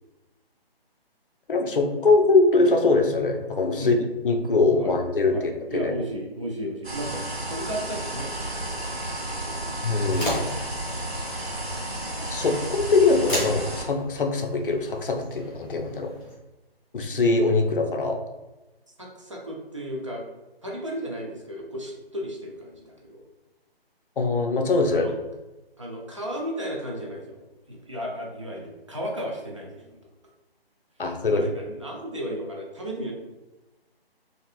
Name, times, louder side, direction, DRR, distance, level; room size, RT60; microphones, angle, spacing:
voice 1, 1.5-3.9 4.2-5.9 9.8-10.5 12.3-16.1 16.9-18.2 24.2-25.1 31.0-31.5, left 3 dB, 60° left, 5 dB, 0.5 m, -22 dB
voice 2, 5.3-8.8 9.3-9.6 19.0-20.2 20.6-23.2 24.9-25.1 25.8-30.0 31.3-33.1, equal, 30° right, -2 dB, 0.5 m, -34 dB
sound 1, 6.8-13.9, right 1 dB, 85° right, 1.3 m, -32 dB
sound 2, 9.9-16.3, equal, 10° left, 0.6 m, -36 dB
2.9 x 2.7 x 2.5 m, 1.1 s
figure-of-eight pair, 150°, 30 cm